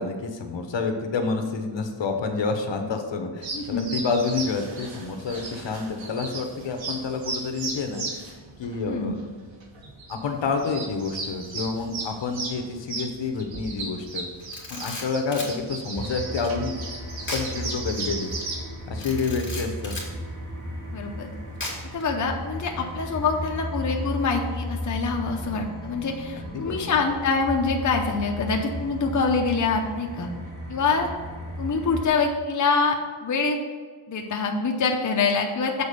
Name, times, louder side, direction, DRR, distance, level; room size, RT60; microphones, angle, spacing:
voice 1, 0.0-9.2 10.1-14.3 14.7-16.7 17.3-18.3 18.8-19.9 26.4-27.0, left 4 dB, 65° left, 5 dB, 1.0 m, -29 dB
sound 1, 3.4-18.6, right 3 dB, 70° right, 1.6 m, -36 dB
voice 2, 3.5-3.9 8.9-9.1 20.9-21.3 21.9-30.3 30.7-31.1 31.6-33.6 34.1-35.8, left 4 dB, 40° left, 2 dB, 0.7 m, -25 dB
Camera, 14.4-15.5 17.2-17.5 17.9-18.0 19.0-20.1 21.6-22.0, left 2 dB, 25° left, 2.4 m, -35 dB
sound 2, 15.9-32.1, equal, 85° right, 2.2 m, -35 dB
7.0 x 4.3 x 6.8 m, 1.5 s
wide cardioid pair, 120°, 48 cm